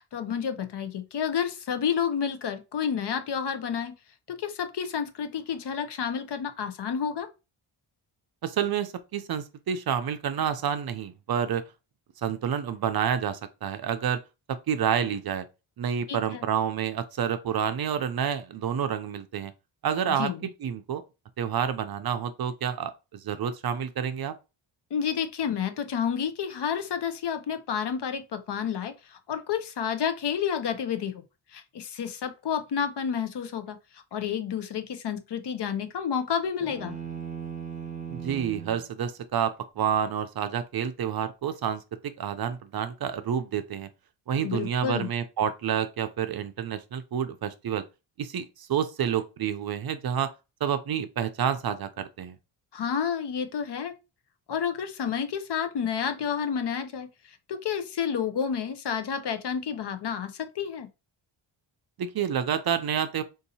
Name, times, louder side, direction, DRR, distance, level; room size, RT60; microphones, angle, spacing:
voice 1, 0.0-3.9 4.3-7.3 16.1-16.4 20.2-20.4 24.9-31.2 31.5-36.9 44.3-45.1 52.7-53.9 54.5-60.9, left 7 dB, 55° left, 0.7 m, -30 dB
voice 2, 8.4-11.7 12.2-14.2 14.5-15.5 15.8-19.5 19.8-21.0 21.4-24.3 38.1-41.8 42.2-43.9 44.3-47.8 48.2-50.3 50.6-52.4 62.0-63.2, right 8 dB, 50° right, 0.5 m, -29 dB
sound 1, 36.6-38.9, right 7 dB, 15° right, 1.0 m, -37 dB
3.8 x 2.7 x 2.7 m
cardioid pair, 80°, 49 cm